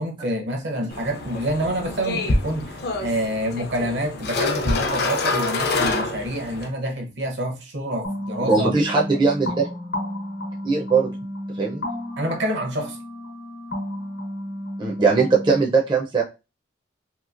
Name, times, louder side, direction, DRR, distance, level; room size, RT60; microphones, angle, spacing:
voice 1, 0.0-8.7 12.2-13.0, right 1 dB, 70° right, 0.8 m, -27 dB
sound 1, 0.9-6.7, left 2 dB, 55° left, 0.5 m, -26 dB
sound 2, 8.0-15.6, left 1 dB, 80° left, 1.0 m, -32 dB
voice 2, 8.4-9.7 10.6-11.1 11.6-11.8 14.8-16.2, right 4 dB, 25° right, 0.4 m, -20 dB
2.9 x 2.7 x 2.4 m
head